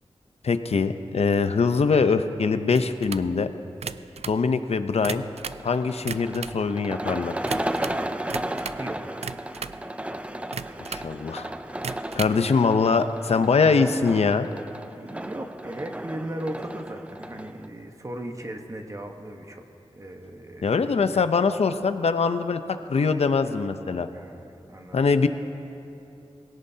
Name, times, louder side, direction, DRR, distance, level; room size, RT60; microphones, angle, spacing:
voice 1, 0.4-3.5 4.3-5.2 5.6-7.4 10.9-11.5 11.9-14.5 20.6-22.6 22.9-24.1 24.9-25.3, left 5 dB, 70° left, 10 dB, 0.6 m, -23 dB
sound 1, 2.7-3.3 3.7-4.4 4.9-5.7 6.0-6.6 7.4-8.0 8.3-8.9 9.2-9.8 10.5-11.1 11.7-12.4, right 6 dB, 75° right, 0.4 m, -36 dB
sound 2, 5.4-17.7, right 1 dB, 10° right, 0.5 m, -34 dB
voice 2, 8.8-9.1 15.0-19.6 19.9-20.8 21.1-21.4 24.1-25.1, right 1 dB, 30° right, 3 dB, 1.1 m, -37 dB
22.0 x 17.0 x 2.8 m, 2.8 s
wide cardioid pair, 80°, 11 cm